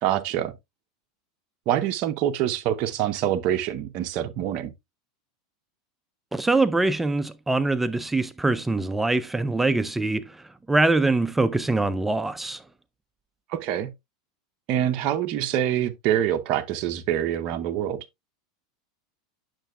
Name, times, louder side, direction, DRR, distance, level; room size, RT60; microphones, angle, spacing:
voice 1, 0.0-0.5 1.7-4.7 13.5-13.9 14.7-18.1, right 11 dB, 50° right, 0.7 m, -25 dB
voice 2, 6.3-12.6, right 2 dB, 10° right, 0.4 m, -23 dB
8.9 x 6.6 x 2.3 m
supercardioid pair, 120°, 2 cm